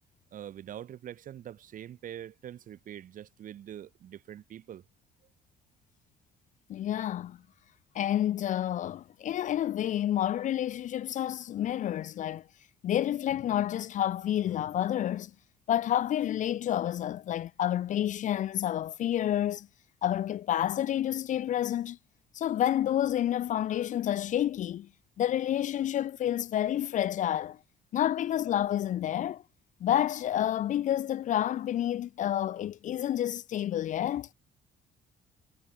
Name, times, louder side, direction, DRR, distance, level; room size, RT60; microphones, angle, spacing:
voice 1, 0.3-4.8, right 10 dB, 50° right, 1.4 m, -44 dB
voice 2, 6.7-7.4 7.9-12.4 12.8-15.3 15.7-19.7 20.0-22.0 22.4-24.9 25.2-27.6 27.9-29.4 29.8-34.3, left 11 dB, 50° left, 0.4 m, -29 dB
cardioid pair, 110°, 17 cm